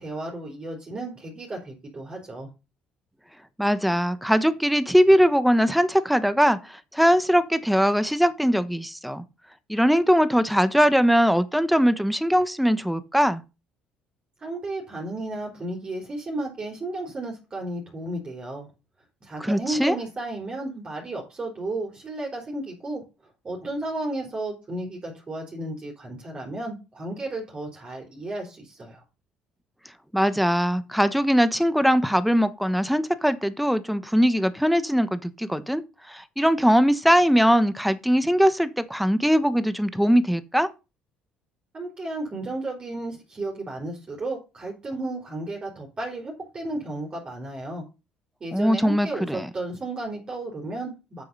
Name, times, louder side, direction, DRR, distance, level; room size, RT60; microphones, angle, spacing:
voice 1, 0.0-2.5 14.4-18.7 19.2-23.0 23.4-29.0 41.7-47.8 48.4-51.2, right 2 dB, 35° right, 4.4 m, -33 dB
voice 2, 3.6-9.2 9.7-13.4 19.4-20.0 30.1-35.8 36.1-40.7 48.5-49.5, equal, ahead, 1.2 m, -21 dB
9.2 x 6.6 x 5.6 m
supercardioid pair, 80°, 3 cm